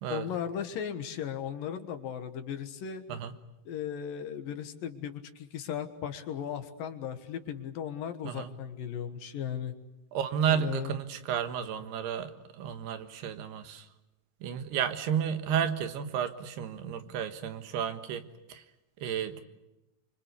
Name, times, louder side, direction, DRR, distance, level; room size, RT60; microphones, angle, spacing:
voice 1, 0.1-3.0 3.7-9.7 10.5-10.9, left 9 dB, 65° left, 8 dB, 2.9 m, -36 dB
voice 2, 10.1-13.9 14.4-18.2 18.5-18.6 19.0-19.4, right 8 dB, 80° right, 9 dB, 3.5 m, -32 dB
26.5 x 25.0 x 8.3 m, 0.96 s
omnidirectional pair, 4.6 m